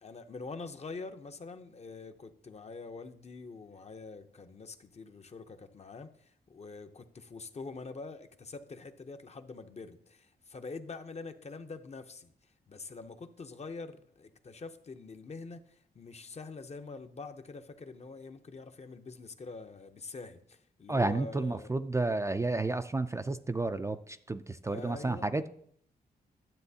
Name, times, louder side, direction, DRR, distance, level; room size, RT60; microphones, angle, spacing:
voice 1, 0.0-12.3 12.7-21.8 24.7-25.3, left 4 dB, 40° left, 0.7 m, -45 dB
voice 2, 20.9-25.5, right 2 dB, 15° right, 0.3 m, -31 dB
12.0 x 7.5 x 2.8 m
cardioid pair, 75°, 17 cm